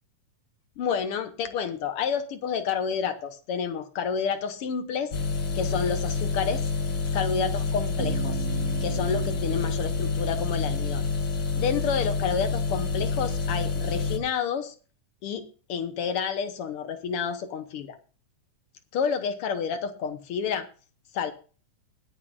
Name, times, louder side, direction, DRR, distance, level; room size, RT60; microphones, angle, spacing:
voice 1, 0.8-5.1 5.5-6.6 7.1-8.5 8.8-11.0 11.6-14.7 15.2-18.0 18.9-20.7 21.1-21.3, left 6 dB, 75° left, 9 dB, 1.3 m, -29 dB
sound 1, 5.1-14.2, left 4 dB, 45° left, 1.2 m, -28 dB
Bass guitar, 8.0-11.7, right 13 dB, 80° right, 1.6 m, -38 dB
21.0 x 7.5 x 2.5 m, 0.37 s
omnidirectional pair, 3.9 m